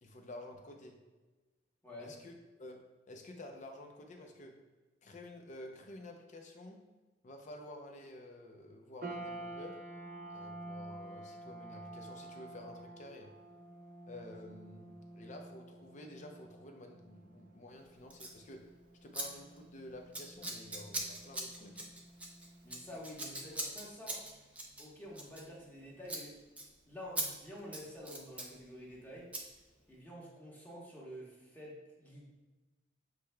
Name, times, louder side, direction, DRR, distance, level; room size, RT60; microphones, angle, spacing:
voice 1, 0.0-1.0 2.0-2.8 3.1-4.6 5.0-6.8 7.2-9.8 10.3-13.3 14.0-18.7 19.0-21.9, left 1 dB, 40° left, 3 dB, 0.6 m, -51 dB
voice 2, 1.8-2.1 22.6-24.2 24.8-26.3 26.9-29.3 29.9-32.3, equal, 10° left, -5 dB, 1.2 m, -49 dB
sound 1, 9.0-23.4, right 2 dB, 45° right, 0.6 m, -50 dB
Scissors, 18.1-18.4 19.1-19.3 19.5-19.8 20.1-25.8 26.0-26.2 26.6-26.7 27.2-27.3 27.6-28.5 29.3-29.4, right 1 dB, 10° right, 0.6 m, -41 dB
7.4 x 3.2 x 2.2 m, 1.2 s
head